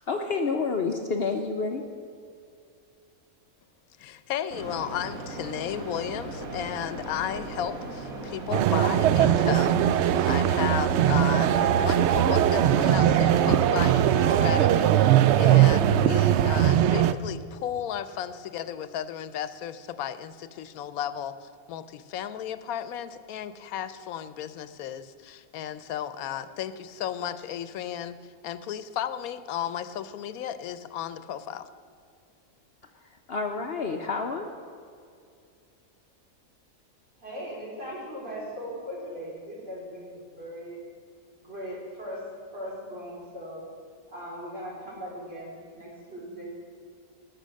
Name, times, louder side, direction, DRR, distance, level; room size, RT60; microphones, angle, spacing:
voice 1, 0.1-1.8 33.3-34.5, left 4 dB, 50° left, 3 dB, 0.9 m, -29 dB
voice 2, 4.0-31.7, left 9 dB, 90° left, 13 dB, 1.1 m, -34 dB
sound 1, 4.5-13.8, right 2 dB, 85° right, 1.7 m, -38 dB
sound 2, 8.5-17.1, right 11 dB, 65° right, 0.7 m, -20 dB
voice 3, 37.2-40.8 41.4-42.3 42.5-43.6 44.1-46.6, equal, 45° right, -6 dB, 4.5 m, -39 dB
19.5 x 6.5 x 6.3 m, 2.3 s
omnidirectional pair, 1.5 m